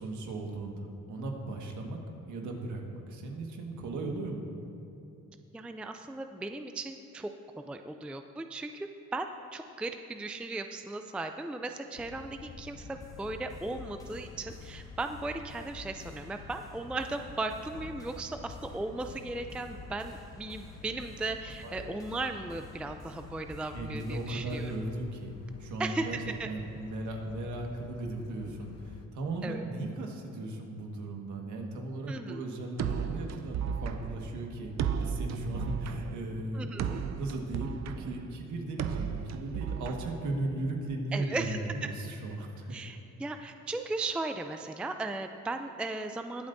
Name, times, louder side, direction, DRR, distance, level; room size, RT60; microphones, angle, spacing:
voice 1, 0.0-2.0 2.3-4.5 21.6-21.9 23.7-42.8, right 2 dB, 80° right, 1 dB, 1.6 m, -37 dB
voice 2, 5.5-7.3 7.7-24.7 25.8-26.5 29.4-29.6 32.1-32.4 36.5-37.0 41.1-41.6 42.7-46.5, right 2 dB, 5° right, 7 dB, 0.4 m, -37 dB
sound 1, 11.9-29.1, left 5 dB, 55° left, 0.9 m, -49 dB
sound 2, 13.0-25.0, left 3 dB, 10° left, 1.2 m, -51 dB
sound 3, 32.8-40.7, right 7 dB, 60° right, 0.6 m, -35 dB
21.0 x 7.9 x 2.6 m, 2.8 s
cardioid pair, 90°, 30 cm